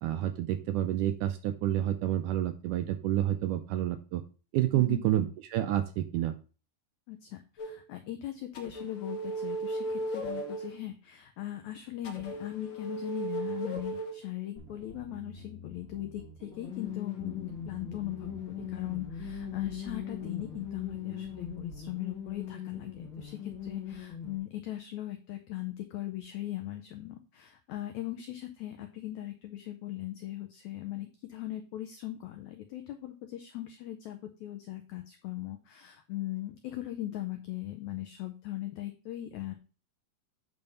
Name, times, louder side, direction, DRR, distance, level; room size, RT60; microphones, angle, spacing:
voice 1, 0.0-4.2 4.5-6.4, right 12 dB, 80° right, 8 dB, 1.9 m, -29 dB
voice 2, 4.7-5.0 7.1-39.5, left 14 dB, 85° left, 6 dB, 1.6 m, -39 dB
sound 1, 7.6-7.8 8.5-10.8 12.0-14.2 16.5-24.4, left 1 dB, 70° left, 1.1 m, -38 dB
sound 2, 14.6-21.9, right 1 dB, 55° right, 0.7 m, -50 dB
8.7 x 3.4 x 5.5 m, 0.36 s
omnidirectional pair, 4.1 m